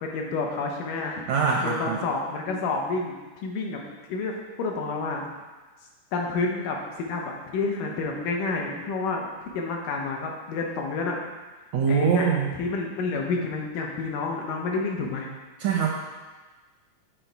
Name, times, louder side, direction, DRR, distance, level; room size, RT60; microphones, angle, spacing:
voice 1, 0.0-1.3 1.6-3.1 3.4-3.8 4.1-5.3 6.1-9.3 9.5-11.2 11.9-15.3, left 3 dB, 80° left, 0 dB, 2.5 m, -29 dB
voice 2, 1.3-2.0 11.7-12.5 15.6-15.9, right 6 dB, 80° right, -1 dB, 1.6 m, -23 dB
9.0 x 4.2 x 4.6 m, 1.3 s
omnidirectional pair, 3.8 m